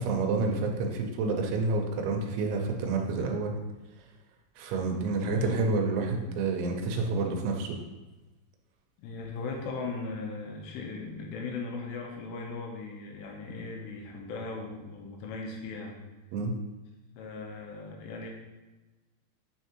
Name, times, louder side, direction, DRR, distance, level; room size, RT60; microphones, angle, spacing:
voice 1, 0.0-3.6 4.6-7.8 16.3-16.5, right 3 dB, 85° right, 2 dB, 3.0 m, -29 dB
voice 2, 4.9-5.6 9.0-16.0 17.2-18.3, left 3 dB, 80° left, 1 dB, 2.7 m, -38 dB
9.3 x 3.5 x 2.9 m, 1.1 s
omnidirectional pair, 5.3 m